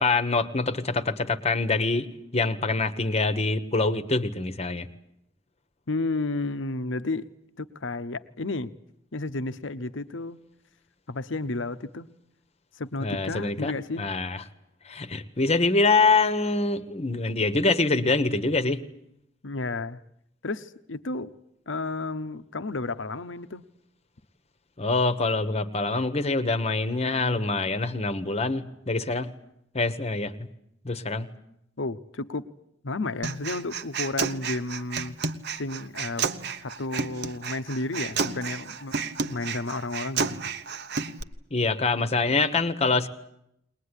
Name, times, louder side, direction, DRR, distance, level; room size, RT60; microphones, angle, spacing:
voice 1, 0.0-4.9 13.0-13.7 14.0-14.4 14.8-18.8 24.8-29.3 29.7-30.5 30.8-31.3 41.5-43.1, left 3 dB, 35° left, 12 dB, 1.2 m, -25 dB
voice 2, 5.9-7.3 7.6-8.7 9.1-10.4 11.1-12.1 12.8-14.1 17.4-17.5 19.4-20.0 20.4-21.3 21.7-23.6 31.8-32.5 32.8-35.2 35.6-36.3 36.6-38.9 39.3-40.4, left 2 dB, 70° left, 13 dB, 0.9 m, -32 dB
Human voice, 33.2-41.2, right 5 dB, 60° right, 1.1 m, -31 dB
21.0 x 20.5 x 9.9 m, 0.78 s
head